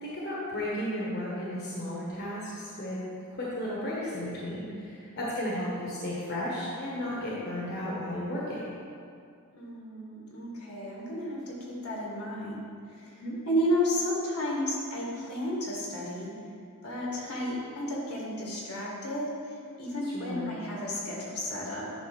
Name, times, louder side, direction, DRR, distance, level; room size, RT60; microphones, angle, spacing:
voice 1, 0.0-3.0 3.3-8.7 13.2-13.4 20.1-20.5, left 1 dB, 45° left, -6 dB, 1.4 m, -34 dB
voice 2, 9.5-16.4 16.8-21.9, equal, 70° left, -3 dB, 2.0 m, -32 dB
11.0 x 3.7 x 6.0 m, 2.4 s
head